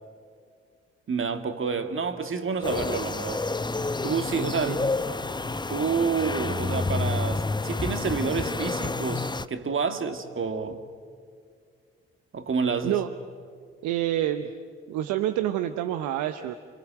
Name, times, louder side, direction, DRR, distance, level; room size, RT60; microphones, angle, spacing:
voice 1, 1.1-3.4 4.0-4.8 5.7-10.8 12.3-13.0, right 5 dB, 45° right, 2.2 m, -28 dB
sound 1, 2.6-9.5, left 3 dB, 15° left, 0.8 m, -29 dB
voice 2, 13.8-14.5 14.9-16.6, right 12 dB, 70° right, 0.9 m, -27 dB
28.5 x 25.0 x 7.7 m
hypercardioid pair, 45°, 30 cm